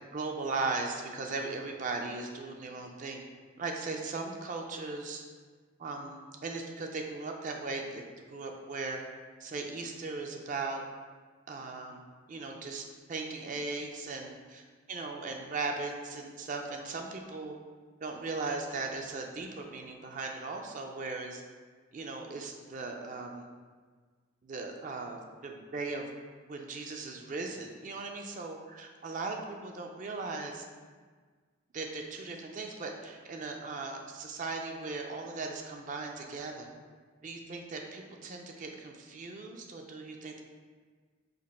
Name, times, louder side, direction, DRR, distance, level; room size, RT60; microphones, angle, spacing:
voice 1, 0.1-3.2 3.6-5.2 5.8-9.0 9.4-10.8 11.5-12.0 12.3-14.6 14.9-17.6 18.0-21.4 21.9-23.4 24.4-26.1 26.5-30.6 31.7-36.7 37.2-40.4, right 3 dB, 35° right, 2 dB, 0.3 m, -38 dB
5.1 x 2.5 x 4.1 m, 1.5 s
head